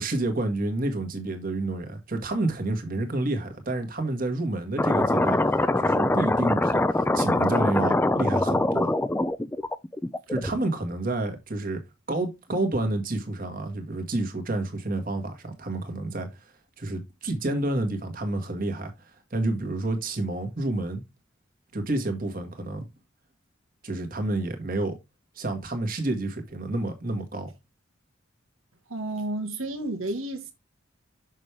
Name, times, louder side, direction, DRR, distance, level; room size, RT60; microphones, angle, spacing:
voice 1, 0.0-9.0 10.3-11.8 12.1-16.5 16.8-21.0 21.7-22.9 23.8-25.0 25.3-27.5, right 2 dB, 45° right, 1.7 m, -29 dB
sound 1, 4.8-10.6, left 2 dB, 10° left, 0.4 m, -23 dB
voice 2, 28.9-30.5, right 1 dB, 90° right, 1.5 m, -31 dB
6.4 x 6.2 x 3.3 m
head